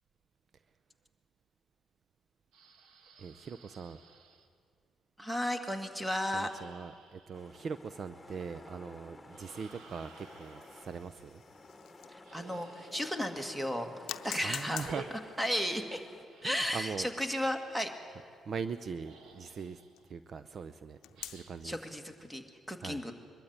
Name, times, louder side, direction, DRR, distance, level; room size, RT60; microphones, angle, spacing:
sound 1, 2.5-4.5 6.0-7.9 9.3-11.1 12.2-13.9 14.8-15.9 16.2-17.8 18.7-18.8 19.0-20.1 21.1-21.7, right 4 dB, 80° right, 1.6 m, -54 dB
voice 1, 3.2-4.0 6.3-11.4 14.4-15.1 16.4-17.1 18.5-21.8 22.8-23.0, right 5 dB, 50° right, 13 dB, 0.6 m, -41 dB
voice 2, 5.2-6.5 12.1-14.9 15.4-16.0 16.4-17.9 21.6-23.1, equal, 10° right, 7 dB, 2.0 m, -34 dB
sound 2, 7.3-16.3, left 2 dB, 10° left, 2.1 m, -54 dB
sound 3, 9.5-12.4 12.9-13.0 14.1-20.1 21.0-21.7, left 13 dB, 85° left, 0.7 m, -48 dB
22.5 x 13.0 x 9.5 m, 2.3 s
cardioid pair, 90°, 0 cm